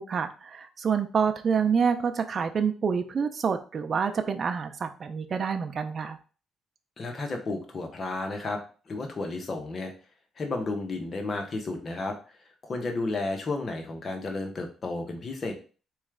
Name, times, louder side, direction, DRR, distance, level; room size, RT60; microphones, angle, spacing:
voice 1, 0.0-6.2, right 6 dB, 45° right, 7 dB, 0.5 m, -27 dB
voice 2, 7.0-8.6 8.9-9.9 10.4-12.2 12.6-15.5, left 3 dB, 40° left, 3 dB, 1.1 m, -32 dB
4.3 x 3.1 x 3.7 m, 0.36 s
cardioid pair, 90°, 0 cm